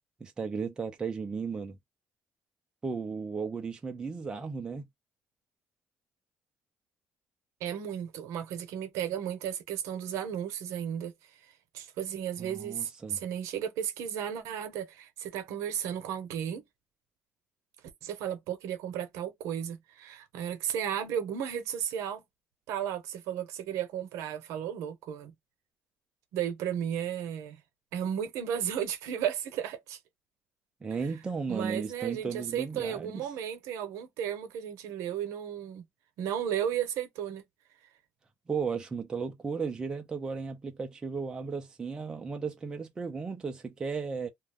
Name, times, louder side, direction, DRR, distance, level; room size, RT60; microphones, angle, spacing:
voice 1, 0.2-1.8 2.8-4.9 12.4-13.2 30.8-33.2 38.5-44.3, right 5 dB, 15° right, 0.4 m, -35 dB
voice 2, 7.6-11.1 11.7-16.6 18.0-22.2 22.7-25.3 26.3-27.6 27.9-30.0 31.5-35.8 36.2-37.4, right 9 dB, 80° right, 0.8 m, -34 dB
2.4 x 2.1 x 3.3 m
cardioid pair, 175°, 5 cm